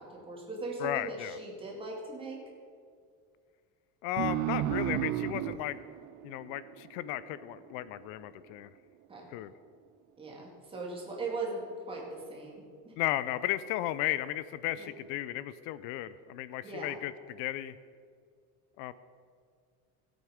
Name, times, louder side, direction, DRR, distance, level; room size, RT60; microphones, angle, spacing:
voice 1, 0.0-2.4 9.1-9.3 10.2-12.9 14.7-14.9 16.6-16.9, right 2 dB, 15° right, -3 dB, 2.3 m, -39 dB
voice 2, 0.8-1.4 4.0-5.8 6.2-8.7 9.3-9.5 13.0-17.8 18.8-18.9, left 14 dB, 85° left, 16 dB, 0.6 m, -35 dB
sound 1, 4.2-7.3, right 14 dB, 80° right, 0.6 m, -33 dB
17.0 x 8.0 x 5.0 m, 2.2 s
cardioid pair, 175°, 37 cm